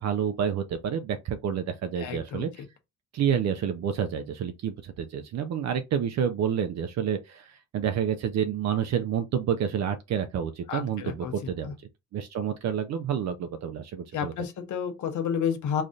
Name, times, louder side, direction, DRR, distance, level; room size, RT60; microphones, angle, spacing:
voice 1, 0.0-2.6 3.1-11.7 12.1-14.3, right 8 dB, 60° right, 0.6 m, -29 dB
voice 2, 2.0-2.5 10.7-11.3 11.6-11.7 14.1-15.8, left 7 dB, 75° left, 1.1 m, -30 dB
3.2 x 2.6 x 3.8 m
cardioid pair, 90°, 30 cm